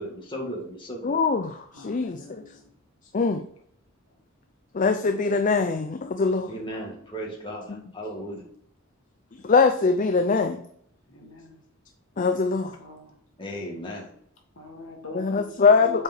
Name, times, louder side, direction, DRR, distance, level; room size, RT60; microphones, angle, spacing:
voice 1, 0.0-1.2 6.5-8.4 13.4-14.1, equal, 25° left, -2 dB, 2.2 m, -36 dB
voice 2, 1.0-2.4 3.1-3.4 4.7-6.5 7.7-7.8 9.4-10.6 12.2-12.7 15.1-16.0, left 4 dB, 40° left, 7 dB, 0.5 m, -22 dB
voice 3, 1.7-2.7 11.1-11.6 12.8-13.2 14.6-16.0, left 1 dB, 75° left, 1 dB, 1.9 m, -43 dB
7.4 x 4.9 x 4.5 m, 0.65 s
head